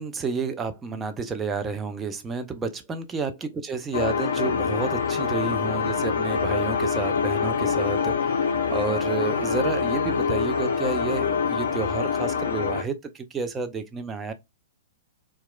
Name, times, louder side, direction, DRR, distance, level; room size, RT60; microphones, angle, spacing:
voice 1, 0.0-14.3, right 4 dB, 15° right, 0.4 m, -30 dB
sound 1, 3.9-12.8, left 6 dB, 60° left, 0.4 m, -25 dB
2.8 x 2.2 x 2.2 m
figure-of-eight pair, 110°, 0 cm